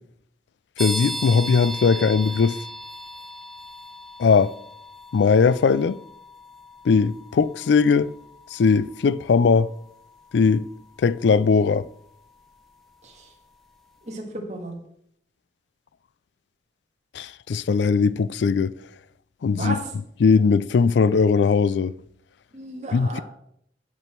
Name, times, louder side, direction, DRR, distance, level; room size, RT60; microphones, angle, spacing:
voice 1, 0.8-2.6 4.2-4.5 5.1-6.0 6.9-8.1 8.5-9.7 10.3-10.7 11.0-11.9 17.1-18.7 19.4-19.8 20.2-21.9 22.9-23.2, left 5 dB, 80° left, 0.4 m, -19 dB
sound 1, 0.8-13.3, equal, ahead, 0.7 m, -38 dB
voice 2, 14.0-14.8 19.5-19.9 22.5-23.2, right 1 dB, 40° right, 1.9 m, -33 dB
11.0 x 6.1 x 4.4 m
head